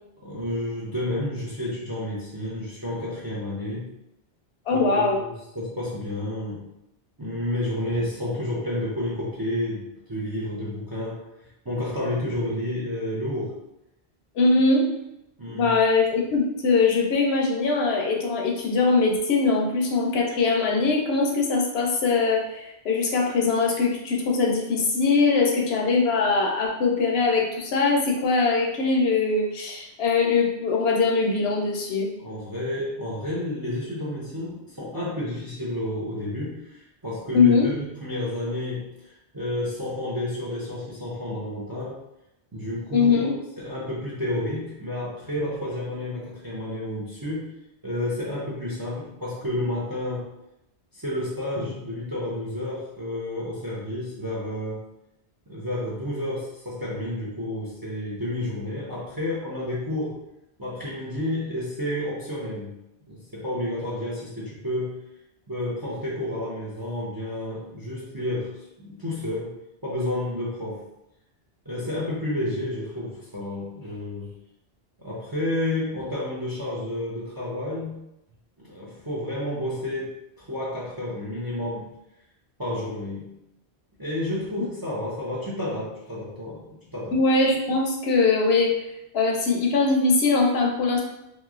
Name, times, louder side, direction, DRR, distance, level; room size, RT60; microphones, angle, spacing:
voice 1, 0.2-3.9 4.7-6.7 7.2-11.2 11.6-13.5 15.4-15.7 32.2-42.0 42.5-43.3 43.6-47.5 47.8-50.3 50.9-54.8 55.5-60.2 60.6-62.8 63.1-65.0 65.5-69.5 69.8-70.8 71.7-74.3 75.0-78.0 78.6-81.9 82.6-83.3 84.0-86.6 86.9-87.2, left 1 dB, 30° right, -6 dB, 0.5 m, -30 dB
voice 2, 4.7-5.2 14.4-14.9 15.5-32.1 37.3-37.7 42.9-43.3 87.1-88.7 89.1-91.0, left 4 dB, 75° left, 1 dB, 0.8 m, -22 dB
3.0 x 2.5 x 2.4 m, 0.85 s
omnidirectional pair, 1.1 m